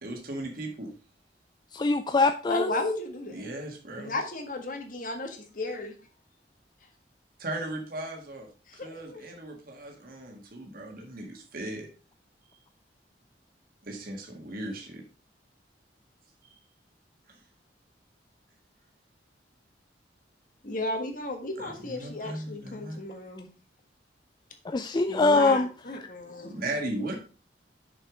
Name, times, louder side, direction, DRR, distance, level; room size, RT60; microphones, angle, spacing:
voice 1, 0.0-0.9 3.3-4.2 7.4-8.5 8.7-11.9 13.8-15.0 16.5-16.6 17.3-17.4 21.6-23.0 26.4-27.2, right 1 dB, 55° right, 2 dB, 1.7 m, -37 dB
voice 2, 1.7-2.7 24.7-25.7, left 3 dB, 25° left, 8 dB, 0.4 m, -23 dB
voice 3, 2.5-3.5 4.0-5.9 8.8-9.2 20.6-23.5 25.1-26.5, left 2 dB, 50° left, 4 dB, 1.6 m, -34 dB
6.4 x 5.7 x 4.9 m, 0.36 s
head